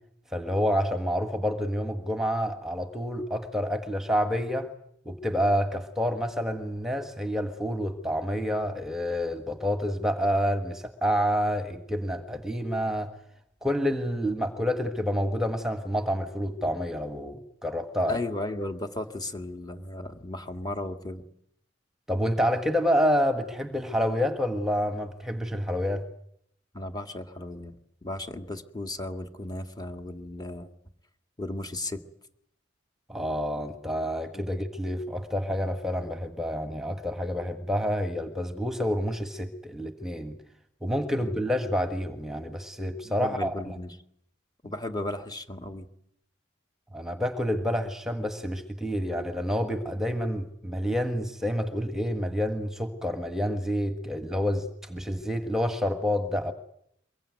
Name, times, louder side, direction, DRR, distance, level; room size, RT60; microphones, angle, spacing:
voice 1, 0.3-4.7 5.0-13.1 13.6-18.2 22.1-26.0 33.1-40.4 40.8-43.7 46.9-56.5, equal, ahead, 7 dB, 1.5 m, -28 dB
voice 2, 18.1-21.2 26.7-27.8 28.0-30.7 31.4-32.0 34.3-34.4 41.2-41.4 43.0-44.0 44.6-45.9, left 1 dB, 20° left, 6 dB, 2.0 m, -35 dB
23.5 x 22.5 x 9.5 m, 0.72 s
head